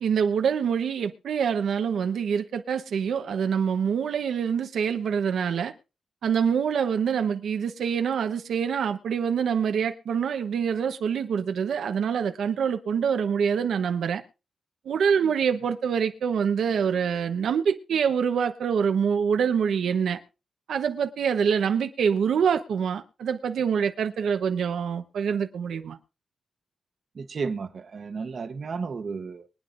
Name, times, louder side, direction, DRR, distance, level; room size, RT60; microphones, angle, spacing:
voice 1, 0.0-5.7 6.2-14.2 14.8-20.2 20.7-26.0, right 7 dB, 75° right, 0.9 m, -25 dB
voice 2, 27.1-29.5, right 5 dB, 40° right, 1.0 m, -33 dB
23.5 x 9.6 x 2.5 m
wide cardioid pair, 175°, 0 cm